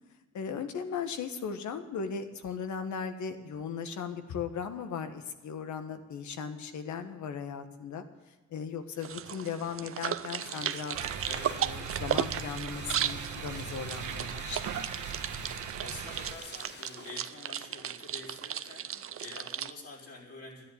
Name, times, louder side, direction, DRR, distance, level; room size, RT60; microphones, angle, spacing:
voice 1, 0.3-8.0 8.5-11.0 11.6-14.6, left 6 dB, 70° left, 8 dB, 1.6 m, -37 dB
sound 1, 9.0-19.7, right 10 dB, 45° right, 0.7 m, -36 dB
sound 2, 9.4-17.6 17.9-18.0, left 4 dB, 35° left, 1.2 m, -50 dB
sound 3, 10.9-16.3, right 7 dB, 75° right, 1.6 m, -39 dB
voice 2, 11.2-11.8 15.5-20.7, left 2 dB, 50° left, -4 dB, 4.7 m, -47 dB
13.5 x 10.5 x 9.4 m, 1.1 s
cardioid pair, 90°, 30 cm